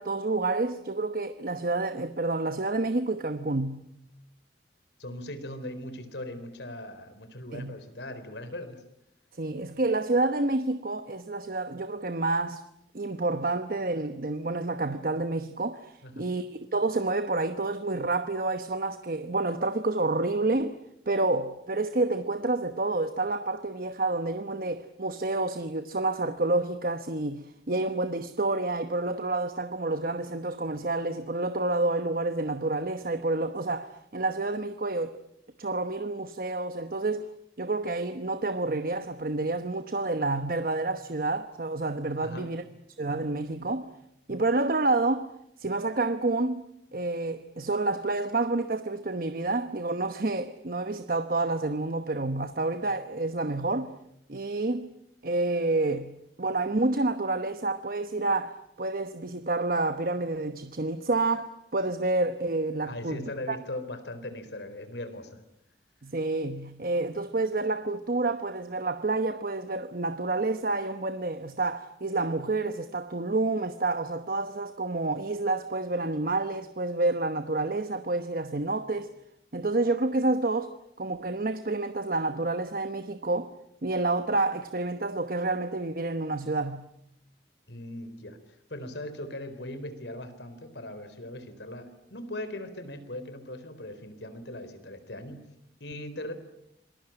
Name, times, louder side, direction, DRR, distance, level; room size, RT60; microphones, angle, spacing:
voice 1, 0.0-3.8 7.5-7.7 9.3-12.6 12.9-20.8 21.1-35.2 35.6-37.3 37.6-42.6 43.0-43.9 44.3-45.3 45.6-46.7 46.9-53.9 54.3-54.9 55.2-63.6 66.0-79.1 79.5-83.5 83.8-86.9, right 2 dB, 55° right, 1.1 m, -29 dB
voice 2, 5.0-8.8 16.0-16.3 42.2-42.5 62.9-65.4 87.7-88.4 88.7-95.4 95.8-96.3, left 1 dB, 80° left, 4.0 m, -39 dB
26.5 x 21.0 x 8.9 m
head